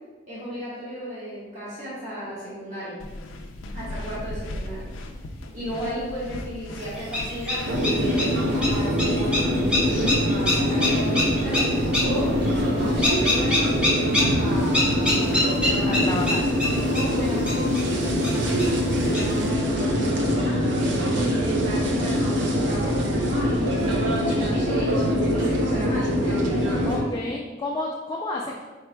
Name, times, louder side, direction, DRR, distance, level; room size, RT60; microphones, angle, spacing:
voice 1, 0.3-3.0 3.7-4.9 5.5-16.0 16.4-20.6 21.1-27.0, equal, 40° right, -11 dB, 1.4 m, -34 dB
sound 1, 3.0-13.1, left 1 dB, 90° left, 0.4 m, -38 dB
sound 2, 6.8-19.5, left 1 dB, 5° right, 0.9 m, -28 dB
sound 3, 7.6-27.0, equal, 70° right, 0.6 m, -23 dB
voice 2, 15.9-16.4 26.9-28.6, left 2 dB, 20° left, -2 dB, 0.3 m, -30 dB
4.9 x 4.4 x 2.2 m, 1.3 s
head